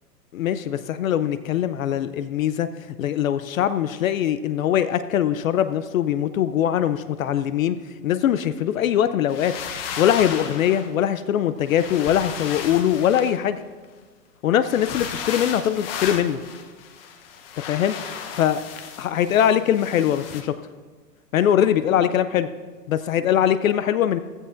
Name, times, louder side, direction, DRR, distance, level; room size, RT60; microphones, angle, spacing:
voice 1, 0.3-2.7 3.0-7.8 8.0-9.5 10.0-13.6 14.4-16.4 17.7-18.0 18.4-18.6 19.0-20.6 21.3-22.5 22.9-24.2, left 10 dB, 55° left, 12 dB, 0.5 m, -22 dB
sound 1, 9.3-10.9 11.6-13.8 14.6-20.4, left 7 dB, 35° left, 0.9 m, -34 dB
15.5 x 12.0 x 2.5 m, 1.4 s
hypercardioid pair, 145°, 49 cm